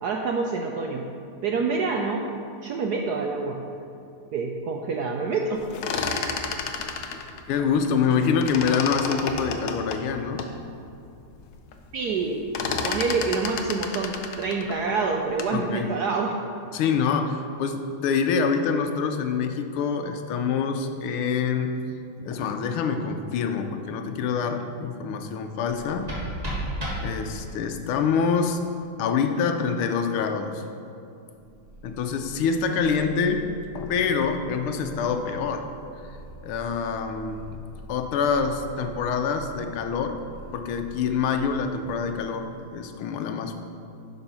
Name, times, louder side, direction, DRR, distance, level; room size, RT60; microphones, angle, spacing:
voice 1, 0.0-1.1 1.4-2.2 2.6-3.6 4.3-5.6 11.9-12.4 12.8-16.4, right 4 dB, 75° right, 1 dB, 0.9 m, -27 dB
sound 1, 5.6-8.1 8.4-10.5 11.1-11.2 11.4-11.8 12.1-15.6, left 5 dB, 70° left, 0.9 m, -31 dB
voice 2, 7.5-10.5 15.5-15.9 16.7-21.8 22.2-26.1 27.0-28.6 29.0-30.6 31.8-33.5 33.7-35.7 36.1-36.2 36.4-37.4 37.9-40.2 40.5-43.5, left 6 dB, 85° left, 6 dB, 1.6 m, -26 dB
sound 2, 25.6-27.7, right 1 dB, 20° right, 1.8 m, -32 dB
Purr, 31.4-42.6, right 1 dB, 60° right, 2.1 m, -45 dB
11.5 x 4.8 x 5.5 m, 2.6 s
omnidirectional pair, 2.3 m